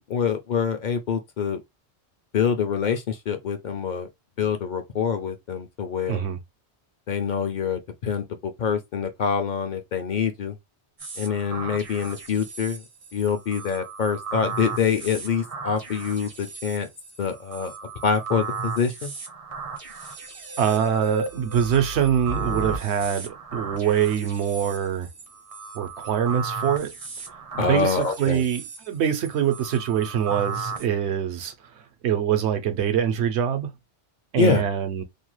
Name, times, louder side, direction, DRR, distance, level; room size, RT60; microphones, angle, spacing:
voice 1, 0.1-1.6 2.3-4.1 4.4-6.2 7.1-10.5 11.2-12.8 13.1-16.9 17.2-17.7 18.0-19.1 27.6-28.4 34.4-34.6, left 6 dB, 60° left, 0.5 m, -25 dB
voice 2, 6.1-6.4 20.6-25.1 25.7-26.9 27.5-33.7 34.3-35.0, right 9 dB, 75° right, 0.9 m, -24 dB
sound 1, 11.0-30.8, right 4 dB, 40° right, 0.5 m, -35 dB
2.6 x 2.2 x 3.0 m
omnidirectional pair, 1.2 m